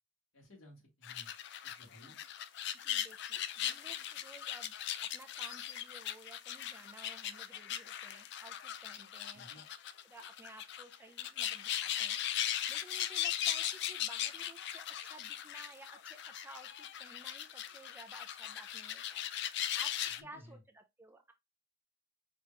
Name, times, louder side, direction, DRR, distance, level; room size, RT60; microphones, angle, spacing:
voice 1, 0.3-1.3 1.6-2.2 9.3-9.6 20.2-20.6, left 1 dB, 85° left, 2.2 m, -57 dB
sound 1, 1.0-20.2, left 11 dB, 55° left, 0.4 m, -39 dB
voice 2, 2.7-4.7 5.0-9.5 10.0-21.3, right 2 dB, 10° right, 0.5 m, -55 dB
5.0 x 3.0 x 3.3 m
head